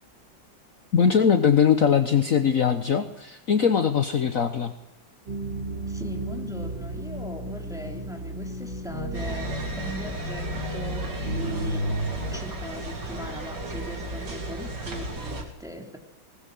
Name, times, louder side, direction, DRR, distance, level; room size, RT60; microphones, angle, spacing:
voice 1, 0.9-4.7, left 7 dB, 50° left, 8 dB, 1.4 m, -21 dB
sound 1, 5.3-12.4, right 1 dB, 90° right, 3.7 m, -33 dB
voice 2, 5.9-11.9 12.3-16.0, equal, ahead, 2 dB, 3.4 m, -40 dB
Walking Around Costco, 9.1-15.4, right 2 dB, 65° right, 4.3 m, -34 dB
20.5 x 20.0 x 7.7 m, 0.84 s
omnidirectional pair, 2.0 m